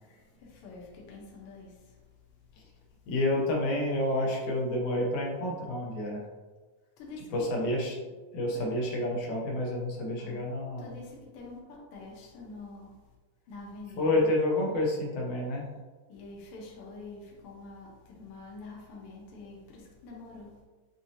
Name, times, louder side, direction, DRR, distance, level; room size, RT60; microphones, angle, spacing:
voice 1, 0.0-2.0 7.0-7.5 8.5-8.6 10.2-10.5 10.8-13.0 13.5-14.2 14.5-14.7 16.1-20.6, left 3 dB, 90° left, -3 dB, 1.2 m, -46 dB
voice 2, 3.1-6.2 7.3-8.0 8.3-10.9 14.0-15.7, left 1 dB, 70° left, -2 dB, 2.1 m, -29 dB
6.1 x 2.7 x 2.7 m, 1.3 s
omnidirectional pair, 3.9 m